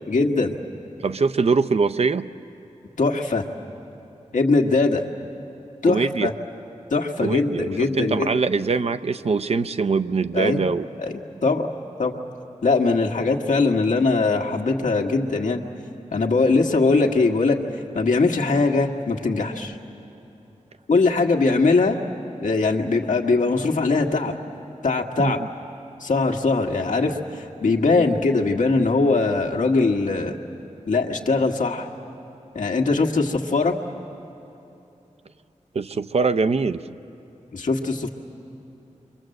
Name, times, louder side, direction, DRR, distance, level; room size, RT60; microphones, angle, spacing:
voice 1, 0.1-0.6 3.0-3.4 4.3-5.0 5.8-6.3 6.9-8.3 10.3-10.6 11.0-11.1 11.4-11.7 12.0-12.2 12.6-15.6 16.1-17.6 17.9-19.8 20.9-22.0 22.4-24.3 24.8-25.4 26.0-30.4 30.9-31.9 32.6-33.8 37.5-38.1, left 3 dB, 85° left, 2 dB, 1.6 m, -21 dB
voice 2, 1.0-2.3 5.8-6.3 7.2-10.9 25.2-25.3 35.7-36.9, right 4 dB, 55° right, 11 dB, 0.6 m, -23 dB
29.0 x 24.5 x 7.8 m, 2.8 s
wide cardioid pair, 100°, 13 cm